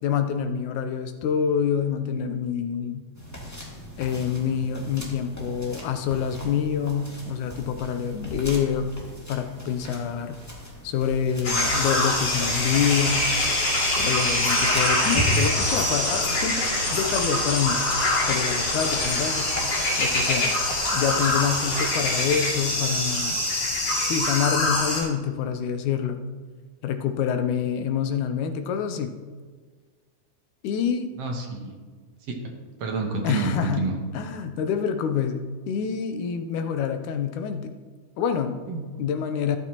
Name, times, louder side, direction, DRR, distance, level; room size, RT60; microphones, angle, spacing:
voice 1, 0.0-3.0 4.0-8.9 9.3-10.4 10.8-13.3 14.0-17.8 18.2-19.5 20.0-20.5 20.9-23.4 24.0-26.2 26.8-29.2 30.6-31.1 33.2-33.9 34.1-37.7 38.2-38.6 39.0-39.6, left 7 dB, 80° left, 7 dB, 2.2 m, -26 dB
sound 1, 3.1-22.7, equal, 5° left, 1.6 m, -38 dB
sound 2, 11.4-25.0, left 1 dB, 55° left, 3.6 m, -24 dB
voice 2, 31.2-31.8 32.3-32.4 32.8-34.0 38.7-38.9, right 4 dB, 60° right, 2 dB, 2.1 m, -28 dB
13.5 x 11.5 x 3.0 m, 1.5 s
omnidirectional pair, 3.5 m